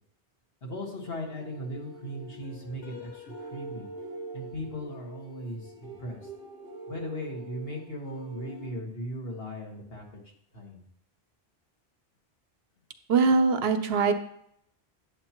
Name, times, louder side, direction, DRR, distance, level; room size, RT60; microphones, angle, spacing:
voice 1, 0.6-3.9 4.3-6.2 6.9-10.2 10.5-10.8, equal, 65° left, -1 dB, 1.8 m, -38 dB
sound 1, 0.8-8.7, right 2 dB, 85° left, 2.2 m, -44 dB
voice 2, 13.1-14.1, right 4 dB, 70° right, 9 dB, 0.9 m, -22 dB
8.6 x 7.9 x 3.0 m, 0.71 s
omnidirectional pair, 1.1 m